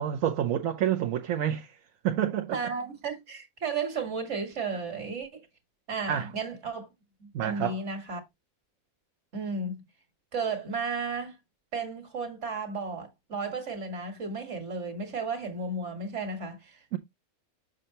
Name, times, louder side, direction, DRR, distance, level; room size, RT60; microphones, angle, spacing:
voice 1, 0.0-1.8 2.0-2.6 6.1-6.3 7.3-7.8 16.9-17.0, right 10 dB, 70° right, 1.1 m, -28 dB
voice 2, 2.5-5.5 5.9-6.9 7.2-8.2 9.3-9.8 10.3-11.4 11.7-17.0, right 4 dB, 55° right, 1.9 m, -34 dB
6.5 x 6.5 x 2.9 m
omnidirectional pair, 1.5 m